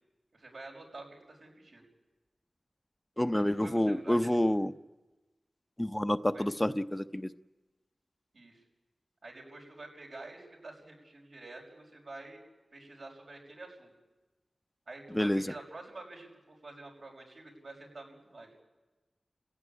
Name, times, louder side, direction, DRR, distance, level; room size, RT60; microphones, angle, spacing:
voice 1, 0.3-1.8 3.3-4.3 6.3-6.5 8.3-8.6 9.2-12.4 12.7-13.9 14.9-18.5, right 2 dB, 80° right, 0 dB, 6.2 m, -48 dB
voice 2, 3.2-4.7 5.8-7.3 15.1-15.4, left 1 dB, 15° left, 10 dB, 0.8 m, -28 dB
29.5 x 16.0 x 9.9 m, 1.2 s
cardioid pair, 45°, 0 cm